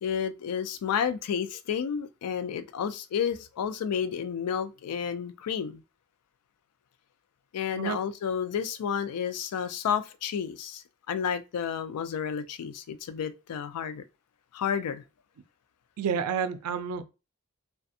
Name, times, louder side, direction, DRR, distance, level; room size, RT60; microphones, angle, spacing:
voice 1, 0.0-5.8 7.5-14.0 14.5-15.0, left 7 dB, 90° left, 0.3 m, -31 dB
voice 2, 16.0-17.0, right 7 dB, 85° right, 0.4 m, -29 dB
2.4 x 2.2 x 2.6 m
head